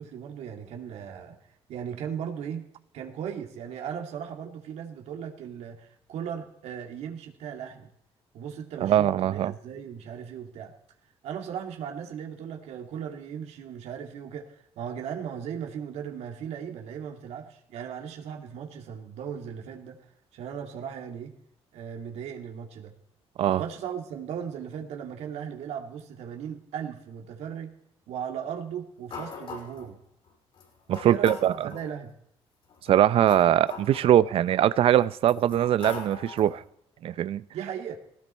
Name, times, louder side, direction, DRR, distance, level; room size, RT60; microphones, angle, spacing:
voice 1, 0.0-1.4 1.7-2.7 2.9-7.9 8.3-10.7 11.2-20.0 20.3-21.4 21.7-22.9 23.6-27.8 28.1-30.0 31.0-32.1 37.5-38.0, right 8 dB, 85° right, 2.4 m, -37 dB
voice 2, 8.8-9.5 23.4-23.6 30.9-31.7 32.9-36.6 37.0-37.4, right 11 dB, 60° right, 0.5 m, -22 dB
sound 1, 29.1-29.9 30.6-30.7 30.9-31.9 32.7-34.6 35.2-36.6, left 5 dB, 55° left, 5.4 m, -41 dB
18.0 x 18.0 x 4.4 m
cardioid pair, 145°, 11 cm